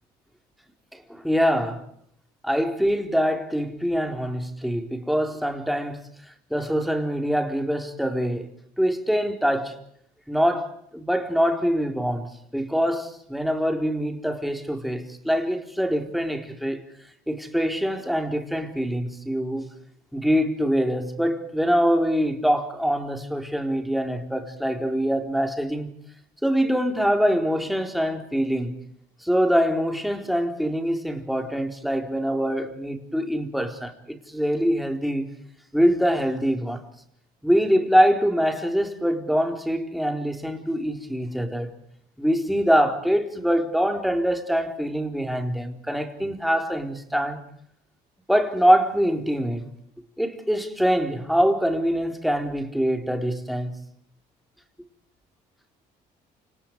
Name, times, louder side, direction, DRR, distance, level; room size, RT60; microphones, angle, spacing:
voice 1, 1.1-1.8 2.4-6.0 6.5-8.5 8.8-9.7 10.3-16.8 17.3-19.6 20.1-25.9 26.4-28.7 29.2-35.3 35.7-36.8 37.4-41.7 42.2-47.4 48.3-49.6 50.2-53.8, equal, ahead, 4.1 m, -24 dB
29.5 x 28.0 x 4.8 m
cardioid pair, 110°, 17 cm